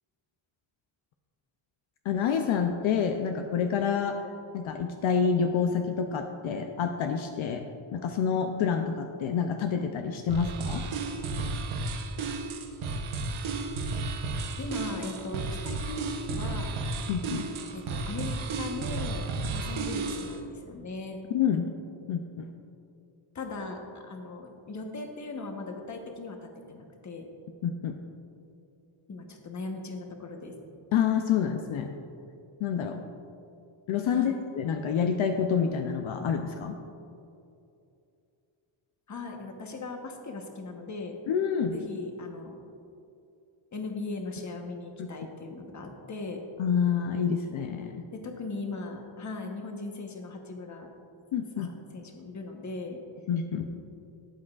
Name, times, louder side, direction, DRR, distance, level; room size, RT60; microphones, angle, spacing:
voice 1, 2.1-4.2 4.5-7.6 7.9-10.8 17.1-17.5 21.3-21.7 22.1-22.5 27.6-28.0 30.9-31.9 32.6-33.0 33.9-36.8 41.3-41.8 45.0-45.1 46.6-48.0 51.3-51.7 53.3-53.7, left 7 dB, 70° left, 5 dB, 0.6 m, -28 dB
sound 1, 10.3-20.4, right 3 dB, 75° right, 0.9 m, -33 dB
voice 2, 14.6-16.7 17.7-19.3 19.5-21.2 21.5-21.7 23.3-27.3 29.1-30.6 34.1-34.4 39.1-41.2 41.7-42.6 43.7-46.4 48.1-50.9 51.5-53.0, left 3 dB, 35° left, 3 dB, 1.1 m, -39 dB
12.5 x 8.6 x 2.4 m, 2.6 s
cardioid pair, 120°, 49 cm